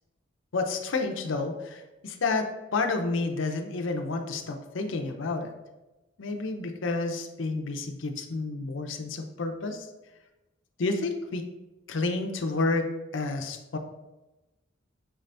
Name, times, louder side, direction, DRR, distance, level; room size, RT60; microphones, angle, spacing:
voice 1, 0.5-5.5 6.2-9.9 10.8-11.5 11.9-12.8 13.1-13.8, left 3 dB, 70° left, 5 dB, 0.5 m, -30 dB
6.1 x 3.3 x 2.6 m, 1.0 s
head